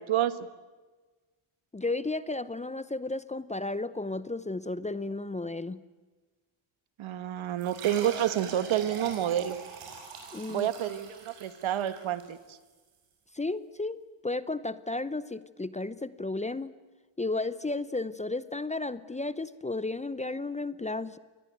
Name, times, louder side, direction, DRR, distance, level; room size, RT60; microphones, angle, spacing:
voice 1, 1.7-5.8 10.3-10.7 13.3-16.7 17.2-21.2, left 2 dB, 15° left, 16 dB, 0.8 m, -33 dB
voice 2, 7.0-9.6 10.5-12.4, right 11 dB, 70° right, 13 dB, 1.6 m, -29 dB
sound 1, 7.6-12.7, right 5 dB, 90° right, 7.0 m, -43 dB
28.0 x 21.0 x 9.4 m, 1.3 s
cardioid pair, 100°, 50 cm